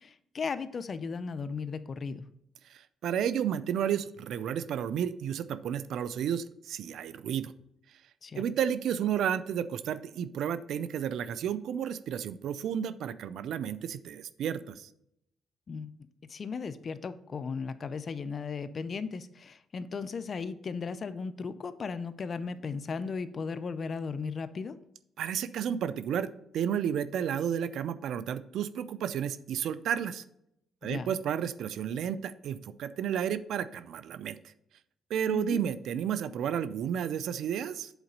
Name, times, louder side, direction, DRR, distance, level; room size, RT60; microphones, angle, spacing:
voice 1, 0.0-2.2 8.2-8.4 15.7-15.9 16.3-24.8 30.8-31.1 35.3-35.6, left 5 dB, 45° left, 13 dB, 0.5 m, -36 dB
voice 2, 3.0-7.5 8.4-14.9 25.2-26.3 26.5-30.2 30.8-34.4 35.1-37.9, right 9 dB, 75° right, 15 dB, 0.5 m, -32 dB
8.1 x 4.0 x 5.2 m, 0.76 s
cardioid pair, 90°, 0 cm